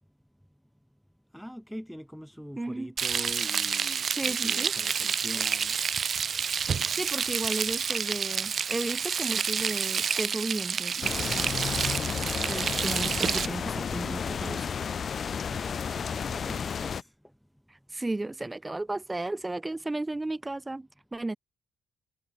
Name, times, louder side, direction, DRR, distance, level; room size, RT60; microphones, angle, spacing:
voice 1, 1.3-5.8 15.5-17.1, equal, ahead, 2.7 m, -43 dB
voice 2, 2.5-2.9 4.1-4.7 7.0-11.7 12.5-14.7 17.7-21.4, right 2 dB, 15° right, 4.4 m, -34 dB
Frying (food), 3.0-13.5, right 6 dB, 50° right, 0.6 m, -29 dB
sound 1, 11.0-17.0, left 6 dB, 50° left, 1.1 m, -32 dB
cardioid pair, 90°, 0 cm